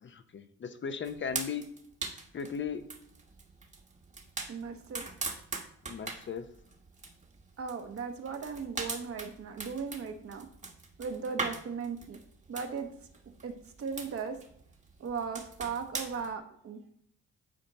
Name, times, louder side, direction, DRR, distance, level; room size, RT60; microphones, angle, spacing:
voice 1, 0.0-1.6 2.3-2.8 5.8-6.5, left 6 dB, 40° left, 9 dB, 0.7 m, -37 dB
sound 1, 1.0-16.3, right 3 dB, 25° right, 1.2 m, -41 dB
voice 2, 4.5-5.0 7.6-10.5 11.0-12.2 12.5-12.9 13.4-13.5 13.8-14.4 15.0-16.9, right 5 dB, 50° right, 6 dB, 1.1 m, -37 dB
8.8 x 4.4 x 4.1 m, 0.67 s
cardioid pair, 90°, 30 cm